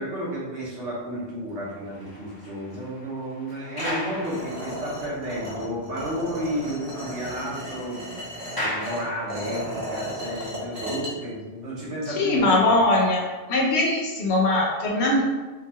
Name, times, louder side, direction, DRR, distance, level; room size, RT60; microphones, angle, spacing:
voice 1, 0.0-12.8, equal, 80° right, -6 dB, 1.4 m, -32 dB
sound 1, 1.6-5.1 5.6-5.7 6.1-6.2 6.5-9.7, left 1 dB, 20° left, 0.8 m, -37 dB
sound 2, 4.2-11.1, equal, 45° right, 1.0 m, -35 dB
voice 2, 12.1-13.2 13.5-15.2, left 2 dB, 75° left, -1 dB, 1.0 m, -21 dB
4.2 x 2.4 x 2.8 m, 1.2 s
omnidirectional pair, 1.1 m